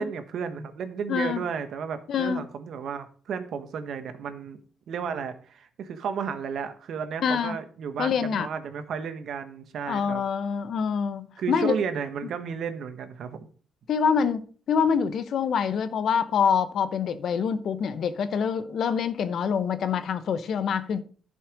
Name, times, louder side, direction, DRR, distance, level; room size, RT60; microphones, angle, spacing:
voice 1, 0.0-4.6 4.9-10.2 11.4-13.4, right 6 dB, 65° right, 1.3 m, -33 dB
voice 2, 1.1-1.4 2.1-2.4 7.2-7.6 8.0-8.5 9.9-11.8 13.9-21.0, left 6 dB, 65° left, 0.8 m, -26 dB
11.0 x 5.6 x 5.1 m
cardioid pair, 90°, 0 cm